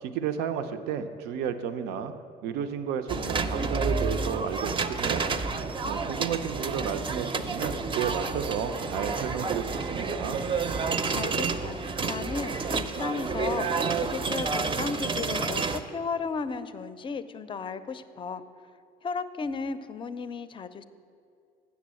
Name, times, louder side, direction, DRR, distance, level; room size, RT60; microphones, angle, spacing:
voice 1, 0.0-2.1 2.4-5.4 5.8-10.4, right 8 dB, 85° right, 9 dB, 0.6 m, -32 dB
sound 1, 3.1-15.8, right 4 dB, 30° right, 0.5 m, -30 dB
voice 2, 11.1-11.8 12.1-13.7 14.0-18.4 19.0-20.8, left 5 dB, 30° left, 12 dB, 0.5 m, -34 dB
7.1 x 6.8 x 7.5 m, 2.5 s
cardioid pair, 100°, 16 cm